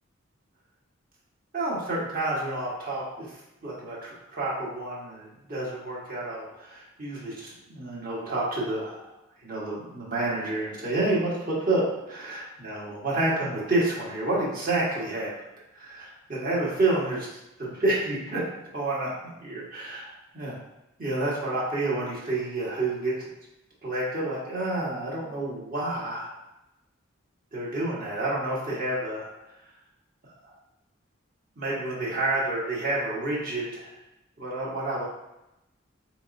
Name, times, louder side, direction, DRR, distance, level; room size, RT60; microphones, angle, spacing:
voice 1, 1.5-3.0 3.6-9.0 9.4-15.3 15.7-17.3 17.6-18.4 18.7-19.1 19.4-20.5 21.0-23.1 23.8-26.3 27.5-29.3 31.6-33.9 34.4-35.0, right 2 dB, 45° right, -6 dB, 1.3 m, -29 dB
5.1 x 3.0 x 2.6 m, 0.92 s
head